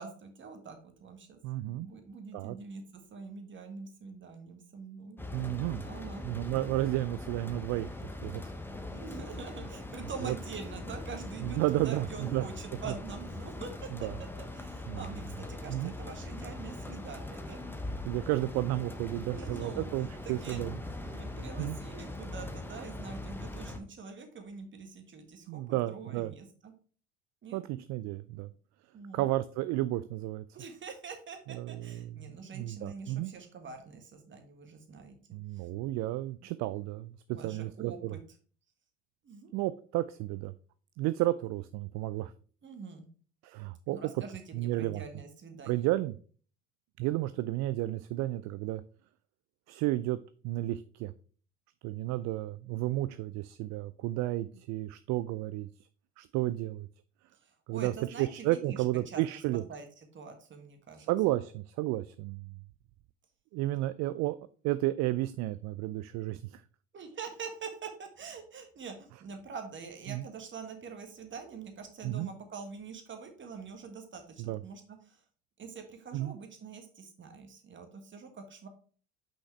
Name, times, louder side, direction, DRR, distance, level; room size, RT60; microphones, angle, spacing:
voice 1, 0.0-5.2 5.8-6.3 8.9-13.9 14.5-17.6 19.3-19.9 20.2-20.6 20.9-26.7 27.4-27.6 28.9-29.3 30.5-35.2 35.5-35.7 37.3-38.2 39.2-39.5 42.1-42.2 42.6-43.1 43.9-45.9 57.4-59.2 59.7-61.1 66.9-75.2 75.6-78.7, right 5 dB, 35° right, 5 dB, 1.6 m, -45 dB
voice 2, 1.4-1.9 2.3-2.6 5.3-5.8 6.2-7.9 8.2-8.5 10.2-10.3 11.4-12.4 14.0-14.2 14.9-15.0 15.7-15.9 18.1-20.8 21.6-21.8 25.5-26.3 27.5-28.5 29.1-30.4 31.5-33.3 35.3-38.2 39.5-40.5 41.0-42.3 43.4-44.0 44.5-45.0 45.7-46.1 47.0-48.8 49.7-50.2 50.4-51.1 51.8-55.7 56.2-56.9 57.7-59.6 61.1-62.5 63.5-64.4 64.6-66.6 70.1-70.3 72.0-72.3 74.4-74.6 76.1-76.3, right 16 dB, 50° right, 14 dB, 0.4 m, -32 dB
sound 1, 5.2-23.8, left 2 dB, 5° left, 0.8 m, -41 dB
5.8 x 5.5 x 3.3 m, 0.42 s
hypercardioid pair, 70°, 35 cm